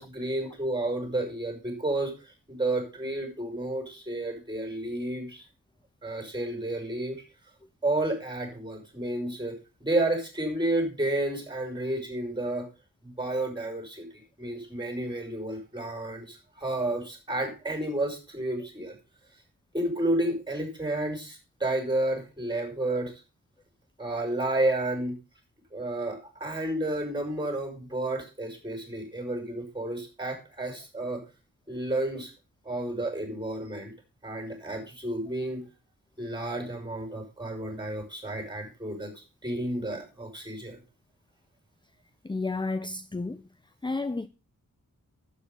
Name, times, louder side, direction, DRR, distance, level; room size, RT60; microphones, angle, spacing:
voice 1, 0.0-5.4 6.0-7.2 7.8-12.7 13.0-19.0 19.7-23.1 24.0-25.2 25.7-31.2 31.7-32.3 32.6-33.9 34.2-35.6 36.2-40.8, right 1 dB, 15° right, 5.9 m, -31 dB
voice 2, 42.2-43.4 43.8-44.3, left 3 dB, 15° left, 0.5 m, -31 dB
12.0 x 8.4 x 5.5 m
wide cardioid pair, 105°, 34 cm